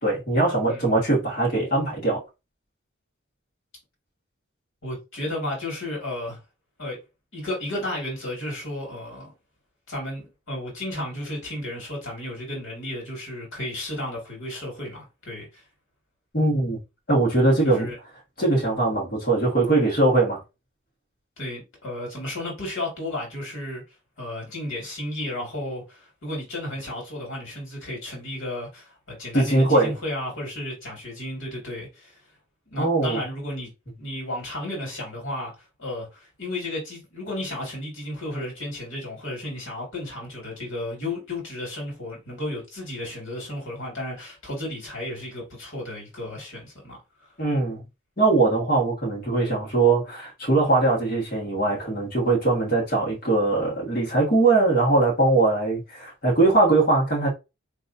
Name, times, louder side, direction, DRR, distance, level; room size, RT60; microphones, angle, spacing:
voice 1, 0.0-2.2 16.3-16.8 17.1-17.9 18.4-20.4 29.3-29.9 32.8-33.2 47.4-47.8 48.2-57.3, right 2 dB, 45° left, 2.0 m, -21 dB
voice 2, 4.8-6.4 6.8-7.0 7.3-9.3 9.9-15.6 17.6-18.0 21.4-23.8 24.2-32.2 32.7-33.7 34.0-47.0, left 1 dB, 75° left, 2.2 m, -33 dB
4.1 x 3.4 x 2.7 m
head